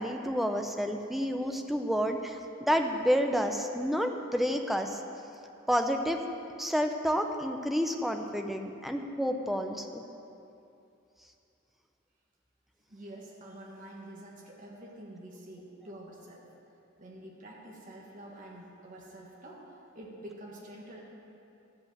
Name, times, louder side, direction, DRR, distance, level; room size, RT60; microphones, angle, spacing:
voice 1, 0.0-5.0 5.7-6.2 6.6-10.0, equal, ahead, 4 dB, 0.6 m, -29 dB
voice 2, 12.9-16.5 17.0-19.6 19.9-21.0, right 1 dB, 40° right, -3 dB, 1.5 m, -47 dB
12.5 x 5.4 x 8.0 m, 2.7 s
head